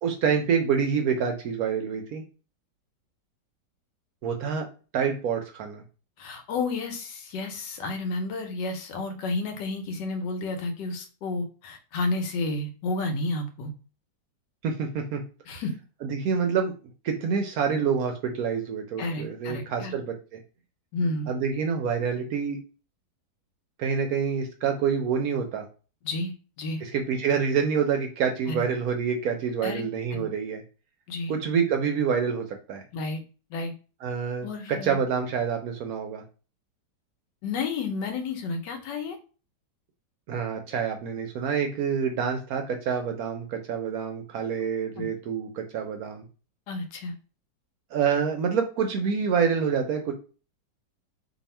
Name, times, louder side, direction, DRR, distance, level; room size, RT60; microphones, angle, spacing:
voice 1, 0.0-2.2 4.2-4.7 4.9-5.8 14.6-15.2 16.0-16.7 17.0-20.4 21.3-22.6 23.8-25.7 26.8-30.6 31.3-32.8 34.0-36.2 40.3-46.2 47.9-50.1, right 6 dB, 70° right, 4 dB, 0.9 m, -27 dB
voice 2, 6.2-13.7 15.5-15.7 19.0-20.0 20.9-21.3 26.0-26.8 28.5-28.7 29.6-30.3 31.1-31.3 32.9-33.2 33.5-33.7 34.4-35.0 37.4-39.2 45.0-45.1 46.7-47.1, left 3 dB, 85° left, 6 dB, 1.3 m, -31 dB
2.8 x 2.6 x 4.2 m, 0.35 s
omnidirectional pair, 1.9 m